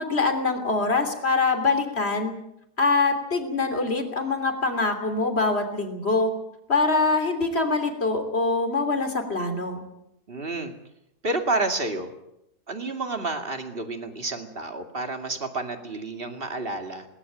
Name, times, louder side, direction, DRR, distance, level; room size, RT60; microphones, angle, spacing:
voice 1, 0.0-2.3 2.8-6.3 6.7-9.8, left 3 dB, 40° left, 7 dB, 3.4 m, -24 dB
voice 2, 10.3-10.7 11.2-12.1 12.7-17.1, right 2 dB, 35° right, 6 dB, 2.6 m, -30 dB
19.5 x 19.0 x 9.1 m, 0.82 s
omnidirectional pair, 1.6 m